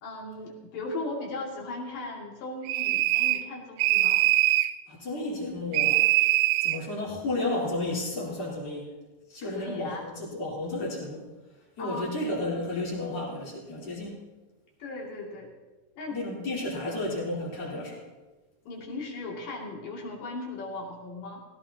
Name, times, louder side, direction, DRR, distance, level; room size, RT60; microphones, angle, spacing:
voice 1, 0.0-4.2 9.4-10.0 11.8-12.2 14.8-15.5 16.0-16.2 16.8-17.1 18.7-21.4, left 2 dB, 65° left, -2 dB, 4.0 m, -37 dB
sound 1, 2.7-3.5 3.8-4.8 5.7-6.8, right 17 dB, 90° right, 1.8 m, -23 dB
voice 2, 4.9-6.1 6.6-8.9 9.3-11.2 11.8-14.1 16.1-18.0, left 2 dB, 45° left, -5 dB, 4.5 m, -32 dB
17.0 x 16.5 x 2.9 m, 1.2 s
omnidirectional pair, 4.3 m